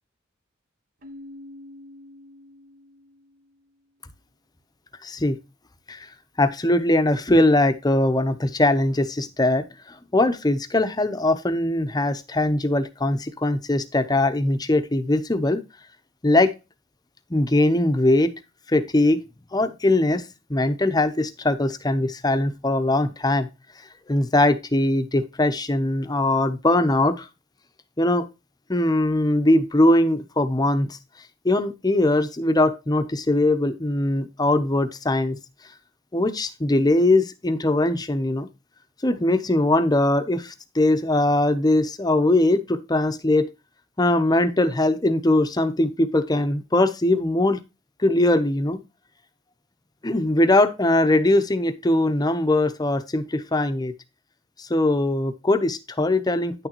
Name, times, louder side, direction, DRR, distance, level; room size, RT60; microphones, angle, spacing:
Keyboard (musical), 1.0-3.7, left 1 dB, 45° right, 1.1 m, -45 dB
voice 1, 5.0-5.4 5.9-6.1 6.4-15.6 16.2-16.5 17.3-18.3 18.7-19.2 19.5-20.2 20.5-23.5 24.1-27.3 28.0-28.2 28.7-31.0 31.4-35.4 36.1-38.5 39.0-43.5 44.0-47.6 48.0-48.8 50.0-53.9 54.6-56.7, left 1 dB, 20° left, 11 dB, 0.8 m, -21 dB
9.7 x 6.4 x 3.0 m, 0.27 s
head